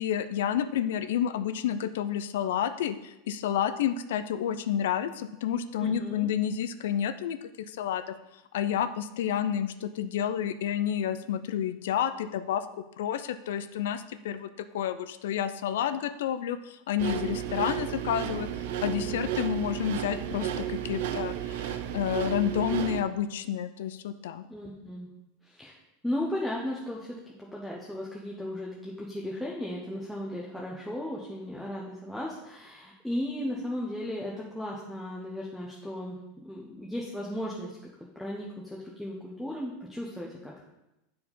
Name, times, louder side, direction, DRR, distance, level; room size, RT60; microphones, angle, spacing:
voice 1, 0.0-8.1 8.5-12.7 13.0-18.5 18.8-24.5, left 9 dB, 80° left, 12 dB, 0.4 m, -30 dB
voice 2, 5.8-6.3 18.9-19.3 24.5-25.1 25.4-25.7 26.0-37.8 38.2-40.7, left 1 dB, ahead, -4 dB, 0.7 m, -36 dB
sound 1, 17.0-23.0, right 11 dB, 60° right, 0.5 m, -33 dB
8.4 x 4.8 x 5.3 m, 0.94 s
supercardioid pair, 180°, 0 cm